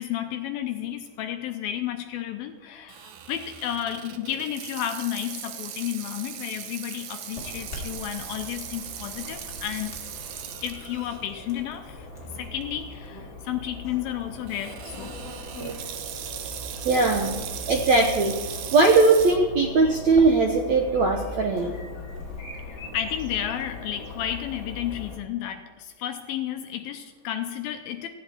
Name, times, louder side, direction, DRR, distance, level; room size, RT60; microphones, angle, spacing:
voice 1, 0.0-10.0 10.6-12.1 12.4-15.2 19.4-19.5 22.9-28.1, left 11 dB, 80° left, 6 dB, 2.3 m, -32 dB
Water tap faucet / Sink (filling or washing), 2.9-11.3 11.8-11.9 12.6-12.9 14.5-19.4, right 9 dB, 90° right, 1.6 m, -38 dB
Chirp tweet / Buzz, 7.3-25.2, left 2 dB, 35° left, 2.8 m, -40 dB
voice 2, 16.8-17.4 17.7-18.3 18.7-21.7, right 3 dB, 70° right, 1 dB, 1.7 m, -20 dB
17.5 x 14.5 x 4.5 m, 1.3 s
omnidirectional pair, 4.8 m